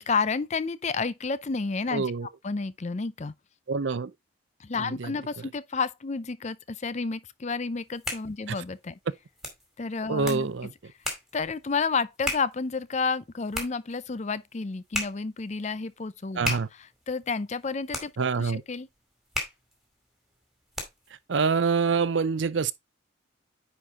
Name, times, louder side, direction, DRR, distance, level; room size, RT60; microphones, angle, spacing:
voice 1, 0.0-2.1 2.4-3.3 4.6-9.0 9.8-10.5 11.3-18.9, left 4 dB, 35° left, 0.5 m, -31 dB
voice 2, 1.9-2.3 3.7-4.1 5.0-5.1 10.1-10.7 16.4-16.7 18.2-18.6 21.3-22.7, right 5 dB, 65° right, 0.6 m, -25 dB
sound 1, 7.7-21.2, left 1 dB, ahead, 2.4 m, -38 dB
9.8 x 4.4 x 3.6 m
head